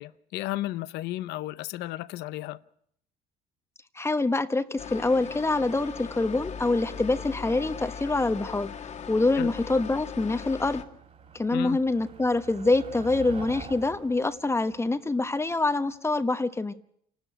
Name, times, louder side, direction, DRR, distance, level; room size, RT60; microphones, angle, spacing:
voice 1, 0.0-2.6 9.4-9.5 11.5-11.8, left 16 dB, 85° left, 0.8 m, -33 dB
voice 2, 3.9-8.7 9.1-10.8 11.3-16.7, left 2 dB, 15° left, 1.1 m, -25 dB
sound 1, 4.8-10.8, left 7 dB, 40° left, 2.0 m, -39 dB
Motor vehicle (road), 5.9-15.9, right 5 dB, 40° right, 4.6 m, -48 dB
28.0 x 12.5 x 9.9 m
cardioid pair, 110°, 17 cm